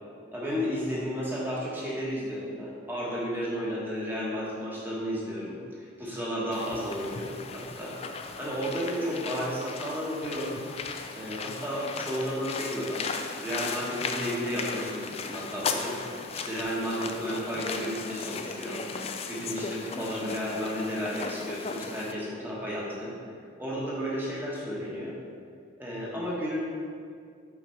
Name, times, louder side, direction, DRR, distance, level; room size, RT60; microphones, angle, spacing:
voice 1, 0.3-8.0 8.4-10.5 11.1-13.1 13.4-16.0 16.3-18.9 19.3-23.1 23.6-25.2 25.8-26.6, equal, 10° right, -5 dB, 1.2 m, -33 dB
sound 1, 6.5-22.1, left 4 dB, 30° left, 0.3 m, -36 dB
5.9 x 4.9 x 4.4 m, 2.2 s
head